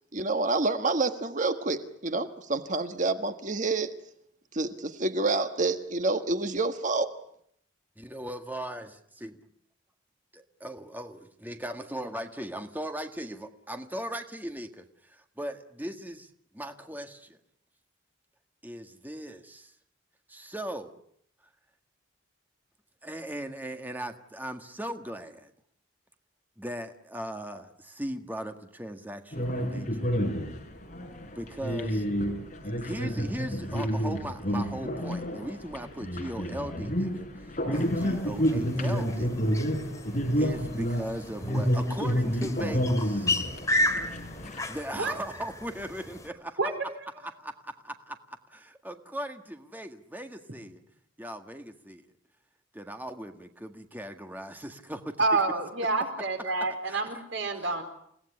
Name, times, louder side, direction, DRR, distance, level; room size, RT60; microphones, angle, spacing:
voice 1, 0.1-3.9 4.5-7.1, right 3 dB, 40° right, 8 dB, 1.4 m, -28 dB
voice 2, 8.0-9.4 10.6-17.4 18.6-19.7 20.3-21.0 23.0-25.5 26.6-30.1 31.3-32.1 32.6-39.5 40.4-43.3 44.7-46.6 47.2-50.8 51.2-52.0 52.7-55.4 56.5-57.2 57.5-57.6, right 1 dB, 10° right, 6 dB, 1.7 m, -38 dB
sound 1, 29.3-44.6, equal, 40° left, 4.9 m, -30 dB
sound 2, 37.7-46.3, left 1 dB, 15° left, 2.5 m, -34 dB
voice 3, 55.2-57.8, right 3 dB, 70° right, 6 dB, 4.5 m, -28 dB
29.5 x 18.0 x 9.8 m, 0.70 s
head